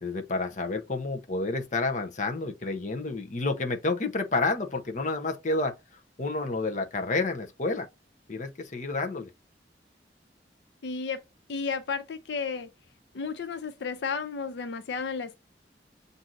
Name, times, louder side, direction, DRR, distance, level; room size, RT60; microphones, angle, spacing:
voice 1, 0.0-5.7 6.2-7.9 8.3-9.3, left 3 dB, 45° left, 0.8 m, -29 dB
voice 2, 10.8-11.2 11.5-12.7 13.1-15.3, left 5 dB, 75° left, 0.5 m, -32 dB
7.4 x 2.7 x 2.5 m
head